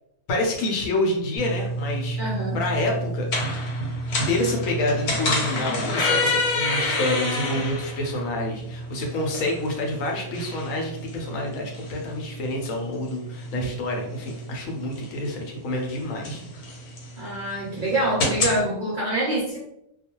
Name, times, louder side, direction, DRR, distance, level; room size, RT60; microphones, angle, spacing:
voice 1, 0.3-2.2 2.5-3.6 4.3-16.4, left 1 dB, 70° left, 0 dB, 1.0 m, -28 dB
sound 1, 1.4-18.6, left 1 dB, 90° left, 1.2 m, -29 dB
voice 2, 2.2-2.6 17.2-19.6, right 1 dB, 50° right, -7 dB, 0.6 m, -26 dB
2.4 x 2.2 x 2.9 m, 0.79 s
omnidirectional pair, 1.5 m